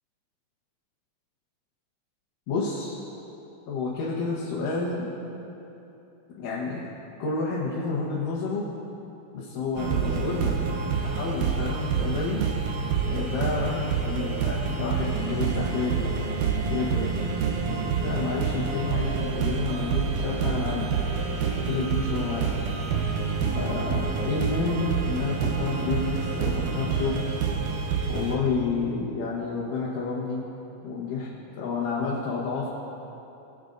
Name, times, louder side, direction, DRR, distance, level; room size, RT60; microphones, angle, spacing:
voice 1, 2.5-3.0 3.7-5.1 6.4-6.8 7.2-8.7 9.3-10.6 11.0-12.4 13.1-16.1 16.7-17.1 18.0-20.9 21.7-22.4 23.5-27.3 28.1-30.4 30.8-31.3 31.6-32.7, left 4 dB, 85° left, -6 dB, 2.9 m, -30 dB
sound 1, 9.8-28.4, right 5 dB, 80° right, 2.4 m, -27 dB
22.5 x 8.1 x 2.6 m, 2.9 s
omnidirectional pair, 3.7 m